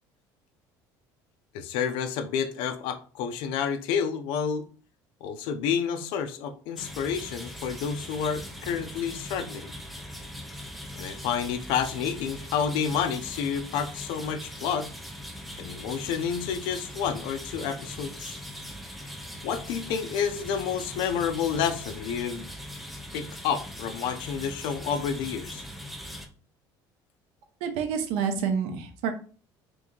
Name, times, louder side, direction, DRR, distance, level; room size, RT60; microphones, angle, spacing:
voice 1, 1.5-4.7 5.2-9.7 11.0-14.9 15.6-18.4 19.4-22.4 23.1-25.6, left 7 dB, 70° left, 7 dB, 0.4 m, -29 dB
sound 1, 6.8-26.3, equal, ahead, 0.3 m, -41 dB
voice 2, 27.6-29.1, right 7 dB, 85° right, 6 dB, 0.6 m, -28 dB
3.0 x 2.5 x 3.6 m, 0.39 s
cardioid pair, 180°, 9 cm